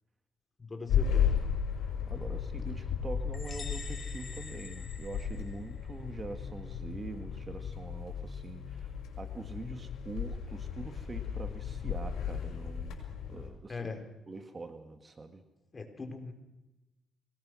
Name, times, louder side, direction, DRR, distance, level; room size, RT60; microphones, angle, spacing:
voice 1, 0.6-1.4 13.7-14.0 15.7-16.3, left 4 dB, 30° left, 5 dB, 4.6 m, -40 dB
sound 1, 0.9-13.5, left 7 dB, 80° left, 5.8 m, -35 dB
voice 2, 1.8-13.0 13.3-13.8 14.3-15.4, right 3 dB, 30° right, 7 dB, 2.0 m, -44 dB
sound 2, 3.3-5.9, left 5 dB, 45° left, 2.7 m, -47 dB
25.5 x 19.5 x 6.4 m, 1.0 s
cardioid pair, 90°, 0 cm